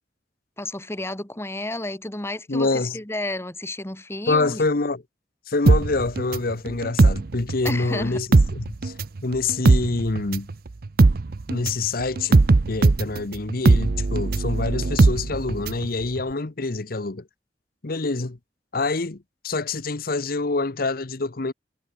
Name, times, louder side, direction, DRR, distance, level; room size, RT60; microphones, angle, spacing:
voice 1, 0.6-4.6 7.6-8.2, left 1 dB, 15° left, 1.7 m, -31 dB
voice 2, 2.5-3.0 4.3-5.0 5.5-8.9 9.2-10.5 11.5-17.3 17.8-18.4 18.7-21.5, left 3 dB, 55° left, 1.0 m, -26 dB
sound 1, 5.7-7.9 8.2-15.9 16.2-16.3, right 3 dB, 55° right, 0.6 m, -19 dB
head